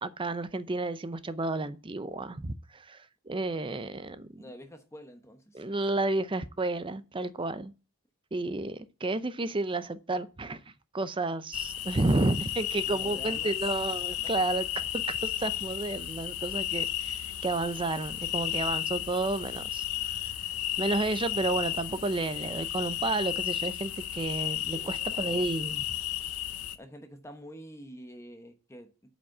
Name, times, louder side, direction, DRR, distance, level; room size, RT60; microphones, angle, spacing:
voice 1, 0.0-4.4 5.5-7.7 8.3-10.6 10.9-20.3 20.8-25.8, right 2 dB, 25° right, 0.6 m, -31 dB
voice 2, 4.4-5.9 12.8-13.7 24.7-25.4 26.7-28.9, equal, 15° left, 1.0 m, -47 dB
sound 1, 11.5-26.8, left 12 dB, 90° left, 0.9 m, -33 dB
8.4 x 5.2 x 7.1 m
head